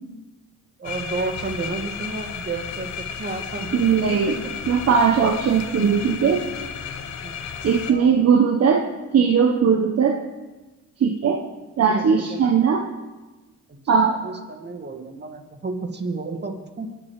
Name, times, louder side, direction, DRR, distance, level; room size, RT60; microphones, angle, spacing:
sound 1, 0.8-7.9, left 7 dB, 65° left, 1.4 m, -33 dB
voice 1, 0.8-4.5 4.9-5.0 6.8-7.3 7.9-8.4 11.8-12.5 13.7-16.9, right 3 dB, 35° right, 5 dB, 2.3 m, -32 dB
voice 2, 3.7-4.4 4.7-6.5 7.6-8.8 9.1-10.2 11.0-11.4 11.8-12.8 13.9-14.1, right 6 dB, 55° right, 3 dB, 1.3 m, -19 dB
24.5 x 10.0 x 5.0 m, 1.2 s
cardioid pair, 90°, 30 cm